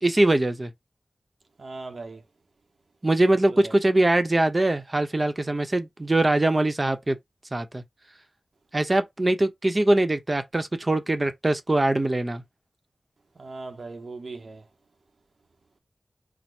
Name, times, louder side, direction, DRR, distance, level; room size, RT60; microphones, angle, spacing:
voice 1, 0.0-0.7 3.0-7.2 7.5-7.8 8.7-12.4, right 1 dB, 35° right, 0.8 m, -22 dB
voice 2, 1.6-2.2 3.6-3.7 13.4-14.6, right 3 dB, 70° right, 0.8 m, -38 dB
4.3 x 2.1 x 4.6 m
cardioid pair, 50°, 0 cm